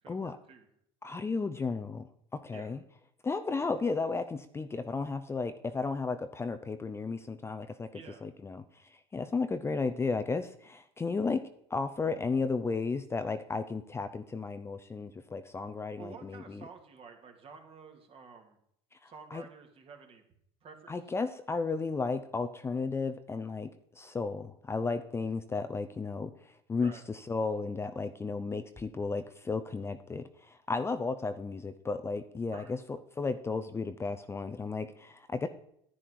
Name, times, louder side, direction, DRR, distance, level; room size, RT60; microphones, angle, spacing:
voice 1, 0.0-0.7 2.5-2.7 7.9-8.3 16.0-18.6 19.1-20.2 20.6-20.9 26.8-27.0 32.5-32.7, right 5 dB, 40° right, 4 dB, 2.4 m, -50 dB
voice 2, 1.0-2.8 3.2-16.6 19.0-19.4 20.9-23.7 24.0-35.5, left 4 dB, 20° left, 10 dB, 0.6 m, -34 dB
10.5 x 9.8 x 4.7 m, 0.71 s
hypercardioid pair, 85°, 14 cm